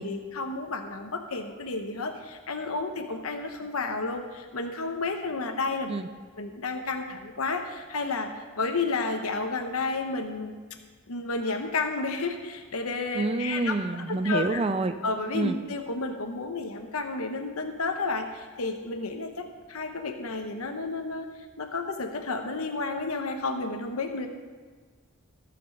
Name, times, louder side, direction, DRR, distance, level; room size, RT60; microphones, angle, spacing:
voice 1, 0.0-5.9 6.4-10.6 11.1-13.7 14.1-14.6 15.0-24.3, left 3 dB, 80° left, 4 dB, 0.9 m, -31 dB
voice 2, 13.1-14.9 15.3-15.6, right 3 dB, 25° right, 10 dB, 0.4 m, -27 dB
15.5 x 6.9 x 5.4 m, 1.5 s
head